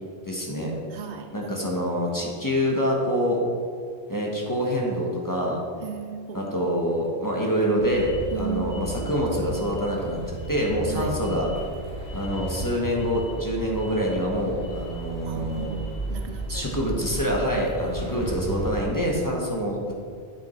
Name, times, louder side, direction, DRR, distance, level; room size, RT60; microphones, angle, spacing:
voice 1, 0.2-0.7 1.3-3.4 4.1-5.6 6.3-11.5 12.1-15.7 16.5-19.9, equal, 20° left, -2 dB, 1.2 m, -26 dB
voice 2, 0.9-1.8 5.8-6.7 8.3-8.8 10.9-11.2 15.3-16.7 18.0-18.4, right 8 dB, 75° right, 7 dB, 0.9 m, -36 dB
sound 1, 7.7-19.0, equal, 60° left, 2.3 m, -34 dB
8.7 x 7.1 x 4.4 m, 2.2 s
omnidirectional pair, 1.2 m